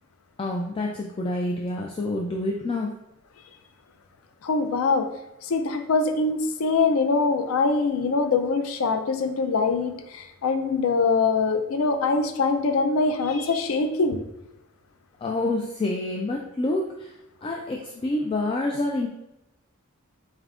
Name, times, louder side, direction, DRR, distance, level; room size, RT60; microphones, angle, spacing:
voice 1, 0.4-2.9 15.2-17.1 17.4-19.1, left 2 dB, 25° left, 0 dB, 0.3 m, -27 dB
voice 2, 4.4-5.1 5.4-14.2, left 4 dB, 85° left, 8 dB, 0.4 m, -23 dB
4.3 x 3.4 x 2.4 m, 0.89 s
head